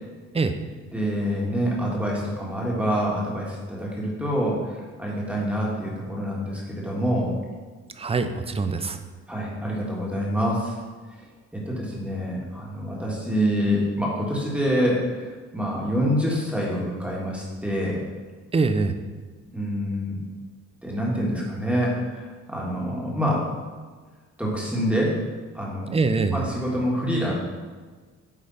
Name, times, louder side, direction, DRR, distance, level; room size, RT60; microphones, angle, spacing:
voice 1, 0.9-7.3 9.3-10.8 11.5-18.0 19.5-20.2 20.8-23.5 24.4-25.2 25.5-26.0 26.3-27.3, equal, 5° right, -4 dB, 1.8 m, -26 dB
voice 2, 8.0-9.0 18.5-19.0 25.9-26.5, right 4 dB, 20° right, 8 dB, 0.5 m, -23 dB
8.7 x 3.3 x 4.2 m, 1.4 s
cardioid pair, 90°, 30 cm